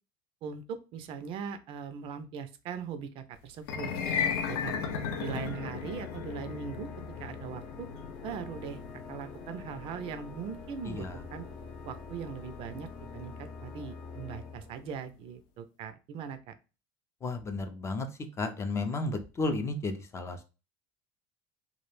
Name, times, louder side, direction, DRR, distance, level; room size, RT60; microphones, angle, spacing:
voice 1, 0.4-3.9 4.2-4.8 5.2-6.9 7.2-7.9 8.2-8.8 9.1-11.5 11.8-16.6, right 7 dB, 50° right, 10 dB, 0.4 m, -40 dB
sound 1, 3.6-13.9, left 6 dB, 85° left, 0.4 m, -37 dB
Organ, 4.4-15.3, left 5 dB, 60° left, 0.8 m, -46 dB
voice 2, 10.8-11.2 17.2-18.1 18.4-20.4, left 2 dB, 25° left, 6 dB, 0.4 m, -33 dB
2.3 x 2.0 x 3.1 m, 0.30 s
supercardioid pair, 115°, 11 cm